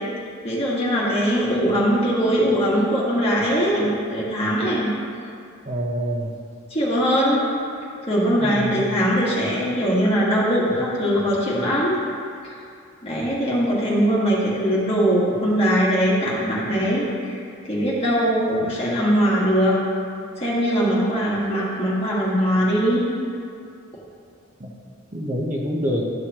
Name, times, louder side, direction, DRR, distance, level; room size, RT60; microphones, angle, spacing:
voice 1, 0.4-4.9 6.7-7.4 8.1-12.0 12.4-12.5 13.0-17.4 17.7-19.8 20.4-23.1, equal, 30° left, -6 dB, 1.7 m, -21 dB
voice 2, 5.7-6.3 8.4-8.8 24.6-24.7 25.1-26.0, equal, 35° right, -2 dB, 0.9 m, -26 dB
12.5 x 6.3 x 3.0 m, 2.4 s
head